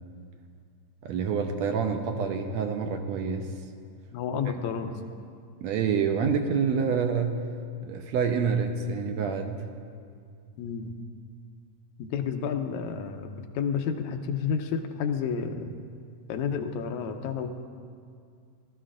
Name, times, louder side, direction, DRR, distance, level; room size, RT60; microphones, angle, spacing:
voice 1, 1.0-3.5 5.6-7.4 7.8-9.7, right 6 dB, 75° right, 5 dB, 1.8 m, -27 dB
voice 2, 4.1-4.9 10.6-10.9 12.0-15.8 16.3-17.5, left 6 dB, 85° left, 6 dB, 2.1 m, -30 dB
18.5 x 12.5 x 2.5 m, 2.3 s
omnidirectional pair, 3.3 m